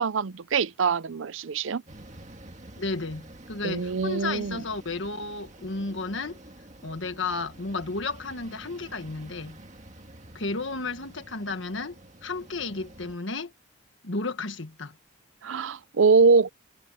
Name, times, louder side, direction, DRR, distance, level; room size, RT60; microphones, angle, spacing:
voice 1, 0.0-1.8 3.6-4.6 15.4-16.5, right 4 dB, 70° right, 0.5 m, -23 dB
sound 1, 1.9-13.2, right 1 dB, 35° right, 1.9 m, -48 dB
voice 2, 2.8-6.4 6.8-9.6 10.3-13.5 14.0-15.0, left 3 dB, 65° left, 1.6 m, -33 dB
head